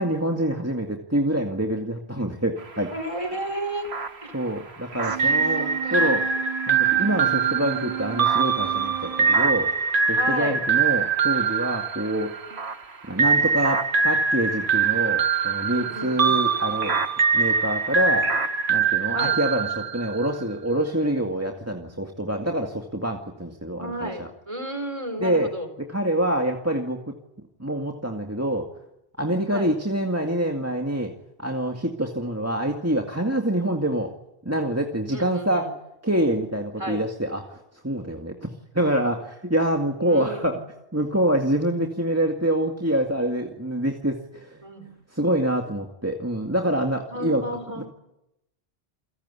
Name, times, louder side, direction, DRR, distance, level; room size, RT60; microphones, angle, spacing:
voice 1, 0.0-2.9 4.3-6.2 6.7-9.7 10.1-12.3 13.1-17.1 17.3-18.3 18.7-24.3 25.2-25.5 25.8-27.0 27.6-28.7 29.2-31.1 31.4-34.1 34.5-35.7 36.0-37.6 37.8-38.5 38.7-40.6 40.9-44.6 45.2-47.4 47.8-47.9, right 1 dB, 15° right, 3 dB, 2.1 m, -26 dB
sound 1, 2.6-18.8, right 4 dB, 75° right, 1.8 m, -37 dB
voice 2, 2.9-3.9 4.2-4.3 5.0-6.2 10.1-10.6 15.7-16.4 19.1-19.3 21.7-22.1 23.7-25.7 29.5-29.7 35.1-35.7 36.8-37.0 40.0-40.7 44.6-44.9 47.1-47.8, right 1 dB, 30° right, 7 dB, 4.7 m, -33 dB
Wind instrument woodwind instrument, 4.9-9.7, right 9 dB, 35° left, 5.9 m, -35 dB
sound 2, 5.2-12.6 13.2-20.4, right 5 dB, 55° right, 1.3 m, -23 dB
29.0 x 17.5 x 9.8 m, 0.87 s
omnidirectional pair, 1.1 m